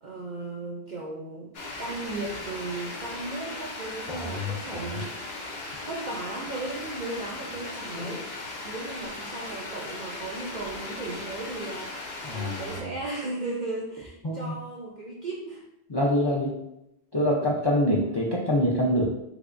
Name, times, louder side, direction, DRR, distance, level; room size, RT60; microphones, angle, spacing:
voice 1, 0.0-1.5 1.8-5.1 5.8-15.7 17.8-18.2, right 2 dB, 55° right, -2 dB, 0.5 m, -36 dB
sound 1, 1.5-12.8, left 2 dB, 70° left, 1.0 m, -38 dB
voice 2, 4.1-5.0 12.2-12.9 14.2-14.5 15.9-16.5 17.1-19.0, left 1 dB, 35° left, -4 dB, 0.4 m, -26 dB
3.4 x 3.2 x 2.5 m, 0.85 s
omnidirectional pair, 1.1 m